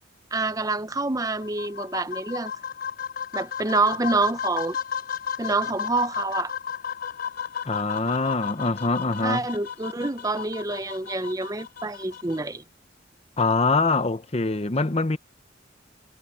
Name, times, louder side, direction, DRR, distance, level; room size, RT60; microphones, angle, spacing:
voice 1, 0.3-2.5 3.3-4.8 5.4-6.5 9.2-12.6, right 3 dB, 20° right, 0.8 m, -27 dB
sound 1, 1.4-12.4, left 7 dB, 50° left, 3.7 m, -34 dB
voice 2, 7.7-9.5 13.4-15.2, left 3 dB, 30° left, 0.9 m, -24 dB
head